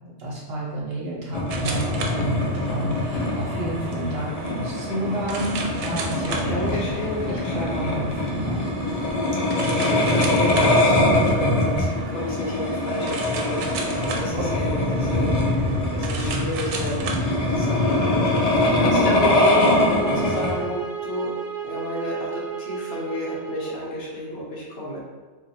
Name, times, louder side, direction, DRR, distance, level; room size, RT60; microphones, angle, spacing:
voice 1, 0.0-6.8 7.3-8.6 14.3-14.9, right 1 dB, 65° right, -5 dB, 1.1 m, -31 dB
sound 1, 1.3-20.5, left 1 dB, 50° left, 0.5 m, -23 dB
sound 2, 1.5-20.6, right 3 dB, 90° right, 0.9 m, -36 dB
voice 2, 6.2-7.5 9.4-15.3 15.9-17.1 17.5-18.3 18.8-21.3 21.6-25.0, left 1 dB, 65° left, -5 dB, 1.1 m, -31 dB
sound 3, 18.9-23.9, right 6 dB, 5° left, 1.0 m, -34 dB
2.7 x 2.5 x 4.2 m, 1.4 s
omnidirectional pair, 1.2 m